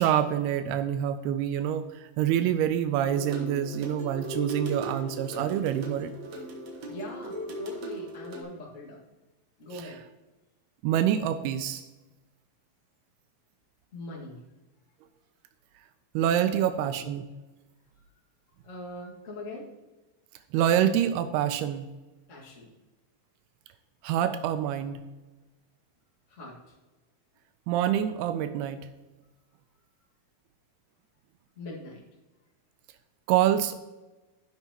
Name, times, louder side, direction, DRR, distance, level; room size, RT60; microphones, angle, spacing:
voice 1, 0.0-6.1 10.8-11.8 16.1-17.2 20.5-21.9 24.0-25.1 27.7-28.9 33.3-33.8, right 10 dB, 85° right, 10 dB, 2.5 m, -26 dB
sound 1, 3.0-8.4, equal, 60° right, 1.9 m, -38 dB
voice 2, 6.9-9.0 9.6-10.0 13.9-14.4 16.5-16.9 18.6-19.7 22.3-22.7 26.3-26.6 31.5-32.0, left 1 dB, 50° left, -3 dB, 0.9 m, -41 dB
15.5 x 5.6 x 2.9 m, 1.1 s
omnidirectional pair, 4.6 m